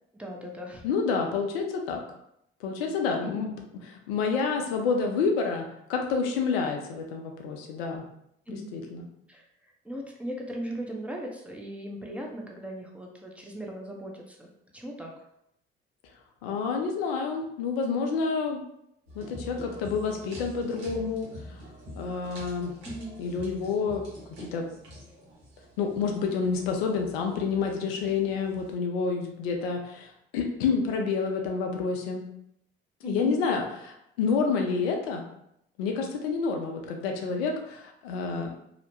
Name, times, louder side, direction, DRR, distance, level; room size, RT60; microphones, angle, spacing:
voice 1, 0.1-0.8 3.2-3.5 8.5-8.7 9.3-15.3 22.8-23.2 33.0-33.4, equal, 5° right, -1 dB, 0.7 m, -38 dB
voice 2, 0.8-2.0 2.6-3.5 4.1-8.0 8.5-9.1 16.4-18.6 19.1-21.3 22.0-22.7 23.2-24.1 24.5-24.7 25.8-32.2 33.0-35.2 35.8-38.5, left 5 dB, 85° left, 3 dB, 0.5 m, -28 dB
sound 1, 19.1-28.7, equal, 70° right, 1.0 m, -46 dB
2.8 x 2.1 x 2.8 m, 0.77 s
hypercardioid pair, 55°, 29 cm